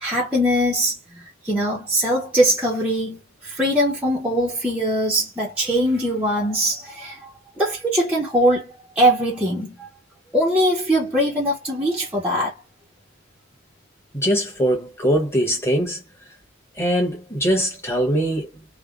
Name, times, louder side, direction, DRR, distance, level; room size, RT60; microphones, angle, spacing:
voice 1, 0.0-9.9 10.3-12.5, equal, 5° right, 0.7 m, -22 dB
voice 2, 14.1-16.0 16.8-18.8, equal, 15° left, 1.2 m, -22 dB
3.3 x 2.2 x 2.4 m
head